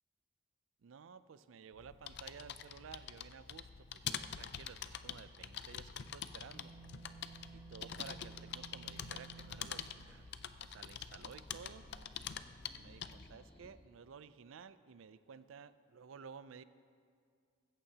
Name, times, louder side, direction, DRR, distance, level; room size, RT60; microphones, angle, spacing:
voice 1, 0.8-6.7 7.5-10.3 10.6-11.9 12.7-16.6, right 6 dB, 85° right, 14 dB, 0.4 m, -54 dB
sound 1, 1.7-13.3, left 8 dB, 60° left, 0.4 m, -46 dB
sound 2, 5.4-13.7, left 1 dB, 30° left, 1.1 m, -65 dB
sound 3, 6.5-10.8, right 6 dB, 25° right, 1.0 m, -56 dB
15.5 x 14.0 x 2.8 m, 2.2 s
head